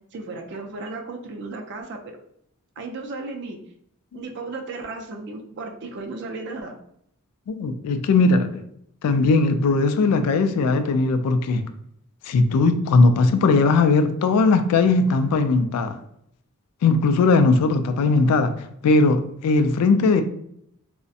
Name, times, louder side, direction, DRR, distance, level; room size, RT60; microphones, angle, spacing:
voice 1, 0.1-2.2 2.8-3.6 4.1-6.8, right 3 dB, 50° right, 4 dB, 0.3 m, -34 dB
voice 2, 7.5-8.6 9.0-11.6 12.3-16.0 16.8-18.5 18.8-20.2, left 3 dB, 85° left, 11 dB, 0.3 m, -19 dB
2.4 x 2.0 x 2.6 m, 0.71 s
head